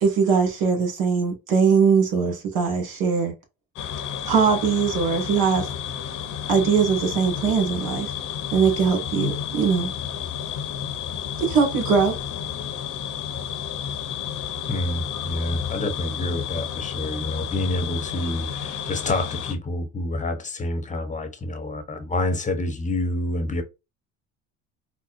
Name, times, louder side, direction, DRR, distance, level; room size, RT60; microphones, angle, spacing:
voice 1, 0.0-3.3 4.2-5.7 6.5-8.1 8.5-9.9 11.4-12.2, right 6 dB, 65° right, 1.9 m, -21 dB
sound 1, 3.8-19.5, left 9 dB, 55° left, 0.9 m, -31 dB
voice 2, 14.7-23.6, left 2 dB, 20° left, 0.9 m, -28 dB
4.2 x 2.1 x 2.5 m
supercardioid pair, 80°, 38 cm